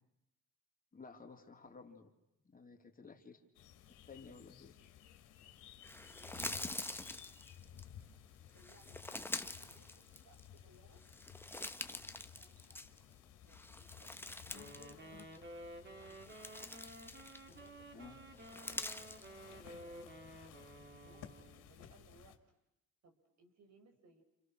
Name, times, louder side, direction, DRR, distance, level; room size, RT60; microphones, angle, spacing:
voice 1, 0.9-2.1 2.4-3.4 3.9-4.8 17.9-18.2, left 4 dB, 30° left, 3 dB, 3.4 m, -54 dB
sound 1, 3.5-22.4, left 10 dB, 90° left, 2.4 m, -57 dB
sound 2, 5.8-7.8 8.6-10.6 11.0-13.1 13.5-14.9 15.2-15.4 16.0-17.7 18.4-19.3, left 2 dB, 5° left, 1.4 m, -45 dB
voice 2, 5.9-7.1 8.5-11.0 11.4-16.8 17.5-19.0 19.4-20.2 20.5-22.4 23.0-24.2, right 3 dB, 60° right, 4 dB, 6.1 m, -67 dB
Wind instrument woodwind instrument, 14.5-21.7, right 1 dB, 35° right, 4.0 m, -53 dB
29.5 x 29.5 x 6.4 m, 0.84 s
cardioid pair, 90°, 30 cm